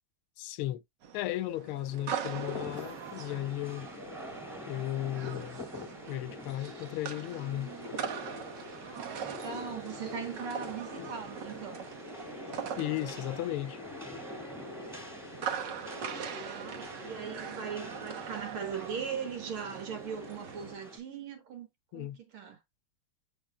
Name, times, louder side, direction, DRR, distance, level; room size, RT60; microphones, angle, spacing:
voice 1, 0.4-0.8 1.1-3.9 4.7-5.6 6.1-7.7 11.0-11.1 12.8-13.8 21.9-22.2, left 14 dB, 85° left, 1.5 m, -35 dB
sound 1, 1.0-20.7, right 8 dB, 60° right, 1.6 m, -42 dB
Rain, 2.3-21.0, left 2 dB, ahead, 2.2 m, -45 dB
voice 2, 8.9-11.9 15.2-22.6, right 7 dB, 80° right, 2.5 m, -40 dB
6.4 x 6.4 x 2.3 m
omnidirectional pair, 2.3 m